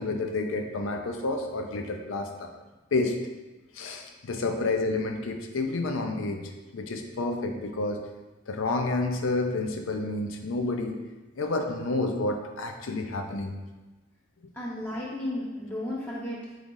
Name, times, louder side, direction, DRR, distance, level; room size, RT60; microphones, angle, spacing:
voice 1, 0.0-2.5 2.9-3.2 3.8-6.4 6.7-8.0 8.5-11.0 11.4-13.5, left 2 dB, 90° left, 4 dB, 0.5 m, -29 dB
voice 2, 14.5-16.5, left 1 dB, 10° left, -6 dB, 0.5 m, -34 dB
4.0 x 3.3 x 3.7 m, 1.2 s
head